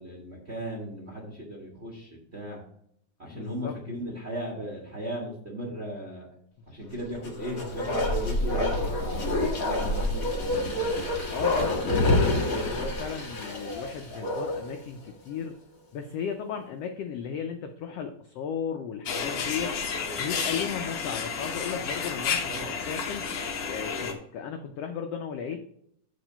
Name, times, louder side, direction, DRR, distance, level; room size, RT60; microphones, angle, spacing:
voice 1, 0.0-2.6 3.2-6.3 6.7-10.9 22.5-22.9, equal, 35° right, -2 dB, 1.0 m, -37 dB
voice 2, 3.3-3.8 11.3-15.6 15.9-19.7 20.2-22.4 22.9-23.3 23.7-25.6, left 7 dB, 80° left, 5 dB, 1.4 m, -35 dB
Bark, 7.2-14.8 15.1-15.2, left 1 dB, 40° left, 1.4 m, -27 dB
sound 1, 19.1-24.1, left 6 dB, 60° left, 1.7 m, -31 dB
7.9 x 4.3 x 5.4 m, 0.70 s
omnidirectional pair, 3.5 m